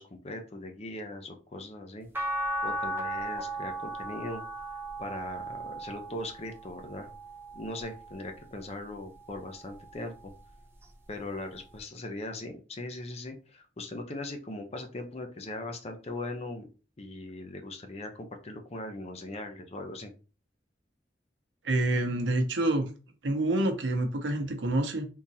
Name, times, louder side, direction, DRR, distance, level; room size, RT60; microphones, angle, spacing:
voice 1, 0.0-2.1 2.6-4.4 5.0-7.1 7.5-10.3 11.1-16.7 17.0-20.1, left 2 dB, 35° left, 5 dB, 0.6 m, -39 dB
sound 1, 2.1-8.4 9.0-10.4 11.8-11.9, right 1 dB, 15° right, 0.6 m, -37 dB
voice 2, 21.6-22.9 23.2-25.1, right 2 dB, 80° right, 6 dB, 0.7 m, -27 dB
3.7 x 2.9 x 2.7 m, 0.34 s
head